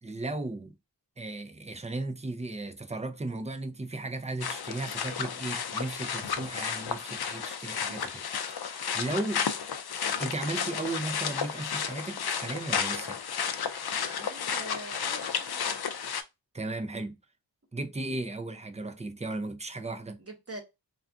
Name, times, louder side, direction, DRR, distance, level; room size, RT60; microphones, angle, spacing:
voice 1, 0.0-0.7 1.2-9.5 10.2-13.2 16.5-17.2 17.7-20.2, right 2 dB, 15° right, 0.4 m, -36 dB
sound 1, 4.4-16.2, left 7 dB, 60° left, 0.5 m, -32 dB
voice 2, 14.1-15.7 20.2-20.6, right 1 dB, 30° right, 1.0 m, -44 dB
2.4 x 2.4 x 3.4 m
wide cardioid pair, 75°, 44 cm